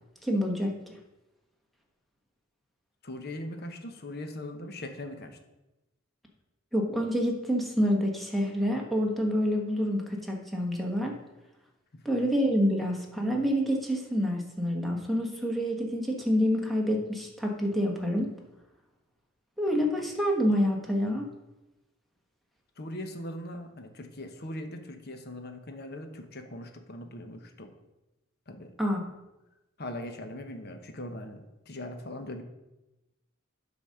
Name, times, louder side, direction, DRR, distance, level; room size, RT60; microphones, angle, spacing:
voice 1, 0.2-0.7 6.7-11.2 12.0-18.3 19.6-21.3 28.8-29.0, equal, ahead, 0 dB, 1.2 m, -27 dB
voice 2, 3.0-5.4 11.9-12.0 22.8-27.7 28.5-28.7 29.8-32.4, left 1 dB, 50° left, 6 dB, 1.0 m, -40 dB
8.9 x 4.1 x 6.4 m, 1.0 s
head